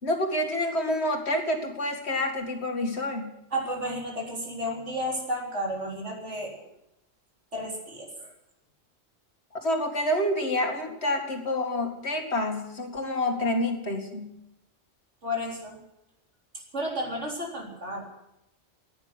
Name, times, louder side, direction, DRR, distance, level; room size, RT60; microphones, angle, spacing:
voice 1, 0.0-3.3 9.5-14.3, left 1 dB, 65° left, 4 dB, 2.4 m, -28 dB
voice 2, 3.5-6.5 7.5-8.3 15.2-15.8 16.5-18.0, equal, 80° right, -1 dB, 4.2 m, -32 dB
15.0 x 9.9 x 9.6 m, 0.86 s
omnidirectional pair, 1.2 m